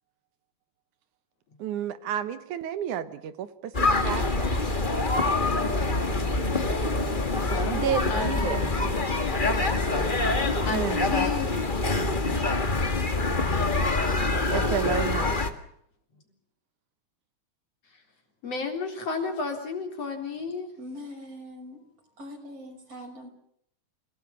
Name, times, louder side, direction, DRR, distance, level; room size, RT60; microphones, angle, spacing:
voice 1, 1.6-4.5 7.7-8.6 10.7-11.3 14.5-15.4, right 10 dB, 80° right, 11 dB, 2.7 m, -31 dB
sound 1, 3.7-15.5, left 2 dB, 20° left, 1.4 m, -25 dB
voice 2, 7.4-9.0 10.6-11.5 18.4-20.7, left 4 dB, 55° left, 3 dB, 4.9 m, -32 dB
voice 3, 20.8-21.8 22.2-23.3, left 1 dB, 50° right, 3 dB, 6.6 m, -42 dB
29.5 x 18.0 x 7.2 m, 0.69 s
omnidirectional pair, 3.4 m